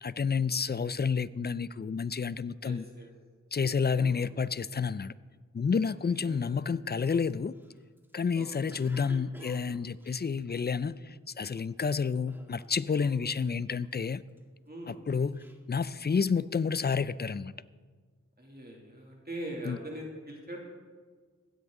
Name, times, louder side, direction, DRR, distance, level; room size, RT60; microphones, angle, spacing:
voice 1, 0.0-2.8 3.5-5.1 5.5-7.5 8.1-14.2 15.1-15.4 15.7-17.5 19.7-19.8, left 5 dB, 35° left, 18 dB, 0.4 m, -30 dB
voice 2, 2.6-3.1 4.0-4.2 5.8-6.6 8.3-8.8 13.0-13.4 14.7-15.0 18.4-20.6, right 1 dB, 30° right, -2 dB, 2.4 m, -43 dB
Cough, 7.0-11.1 11.6-11.9 12.3-13.0 13.2-14.4 14.9-16.4, right 1 dB, 5° right, 1.7 m, -54 dB
15.5 x 12.0 x 3.7 m, 1.5 s
cardioid pair, 40°, 31 cm